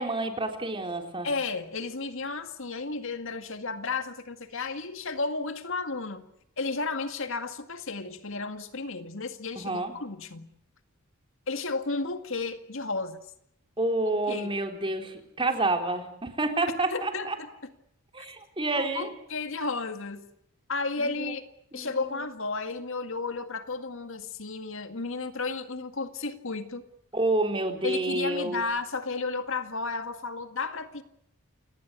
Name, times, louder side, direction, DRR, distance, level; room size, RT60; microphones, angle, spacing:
voice 1, 0.0-1.3 9.6-9.9 13.8-17.4 18.1-19.1 21.0-21.3 21.7-22.3 27.1-28.6, right 2 dB, 25° right, 3.8 m, -29 dB
voice 2, 1.2-6.2 6.6-10.5 11.5-13.2 14.3-14.5 16.9-17.5 18.2-18.3 18.7-20.3 20.7-21.4 21.7-26.9 27.8-31.0, left 3 dB, 60° left, 2.0 m, -33 dB
29.5 x 19.0 x 8.2 m
head